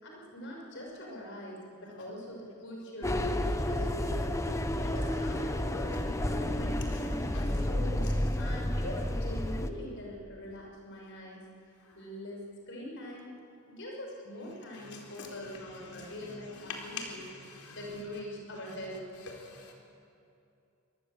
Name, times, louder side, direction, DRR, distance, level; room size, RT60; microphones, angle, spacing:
voice 1, 0.0-4.4 4.8-8.1 8.4-11.4 11.9-13.3 13.7-17.2 17.7-19.1, left 1 dB, 60° left, -1 dB, 5.9 m, -43 dB
sound 1, 3.0-9.7, left 1 dB, 15° left, 1.0 m, -31 dB
voice 2, 14.7-15.3 15.9-17.8 19.5-19.7, left 4 dB, 85° left, 0 dB, 4.6 m, -44 dB
24.5 x 19.0 x 8.1 m, 2.6 s
head